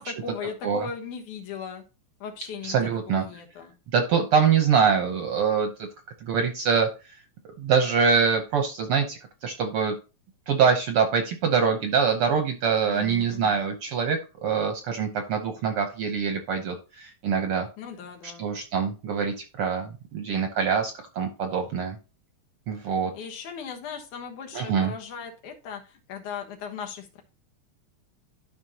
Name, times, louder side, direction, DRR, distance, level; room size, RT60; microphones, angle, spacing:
voice 1, 0.0-1.8 2.2-2.8 3.2-3.7 12.9-13.6 17.8-18.5 23.0-27.2, left 6 dB, 85° left, 3 dB, 2.8 m, -38 dB
voice 2, 2.6-3.2 3.9-5.7 6.2-6.9 7.6-9.9 10.5-17.7 18.4-22.0 22.7-23.1 24.5-24.9, right 6 dB, 65° right, 5 dB, 1.5 m, -24 dB
12.5 x 5.0 x 2.8 m, 0.31 s
omnidirectional pair, 3.4 m